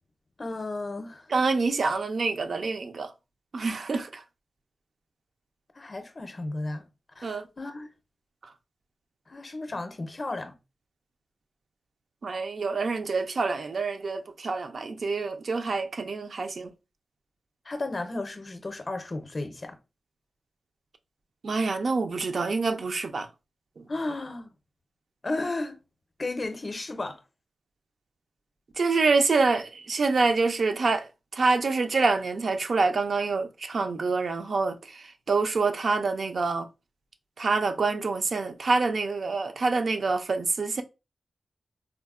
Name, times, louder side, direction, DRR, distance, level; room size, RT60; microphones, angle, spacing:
voice 1, 0.4-1.3 5.8-6.8 7.2-7.9 9.3-10.5 17.7-19.8 23.9-24.5 25.2-25.8 26.2-27.2, left 2 dB, 40° left, 0.5 m, -34 dB
voice 2, 1.3-3.1 3.5-4.2 7.2-7.5 12.2-16.7 21.4-23.3 23.8-23.9 28.8-36.7 37.4-40.8, right 4 dB, 65° right, 0.4 m, -26 dB
3.6 x 2.0 x 2.3 m
wide cardioid pair, 90°, 0 cm